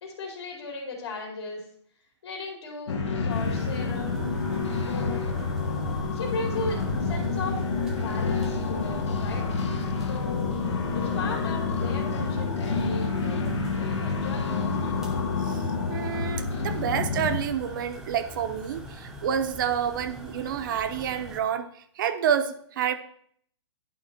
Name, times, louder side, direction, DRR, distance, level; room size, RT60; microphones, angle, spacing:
voice 1, 0.0-1.6 2.2-4.2 4.5-5.3 6.1-7.6 7.9-9.6 10.0-10.5 10.9-14.8, left 3 dB, 65° left, 0 dB, 2.3 m, -37 dB
sound 1, 2.9-17.4, left 4 dB, 85° left, 1.3 m, -28 dB
sound 2, 3.3-21.4, right 1 dB, 5° right, 0.7 m, -42 dB
voice 2, 15.9-22.9, right 8 dB, 45° right, 9 dB, 0.7 m, -28 dB
11.0 x 3.9 x 4.3 m, 0.63 s
hypercardioid pair, 155°, 15 cm